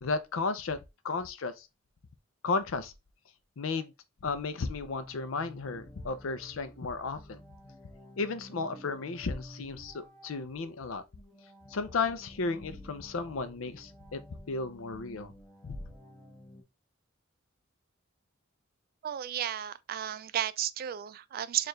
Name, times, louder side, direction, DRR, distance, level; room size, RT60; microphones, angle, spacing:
voice 1, 0.0-0.8 1.0-1.7 2.4-2.9 3.6-3.9 4.2-7.4 8.2-11.0 11.7-14.2 14.5-15.3 15.6-15.8, left 4 dB, 75° left, 0.6 m, -34 dB
sound 1, 4.8-16.6, left 1 dB, 15° left, 1.0 m, -52 dB
voice 2, 19.0-21.7, right 10 dB, 45° right, 0.3 m, -33 dB
4.5 x 2.5 x 3.1 m
head